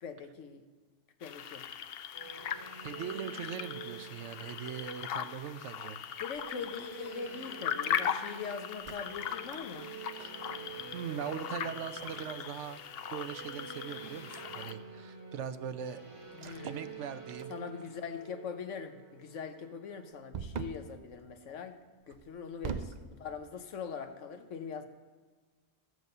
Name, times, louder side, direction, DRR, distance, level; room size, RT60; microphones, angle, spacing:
voice 1, 0.0-0.6 1.2-1.7 6.2-9.9 16.3-17.0 17.5-21.8 22.1-24.9, left 6 dB, 85° left, 8 dB, 1.3 m, -42 dB
sound 1, 1.2-14.7, left 9 dB, 65° left, 0.7 m, -39 dB
sound 2, 2.1-20.2, right 5 dB, 25° right, 2.2 m, -49 dB
voice 2, 2.8-6.0 10.2-10.3 10.9-12.8 13.1-16.0 16.6-17.5, right 8 dB, 75° right, 11 dB, 1.0 m, -40 dB
sound 3, 4.4-5.2 6.3-6.7 8.7-10.4 11.8-13.2 13.5-13.8 16.3-16.9 17.3-17.9 20.3-20.9 22.1-23.1, right 6 dB, 50° right, 0.5 m, -43 dB
14.0 x 8.0 x 6.6 m, 1.4 s
omnidirectional pair, 1.2 m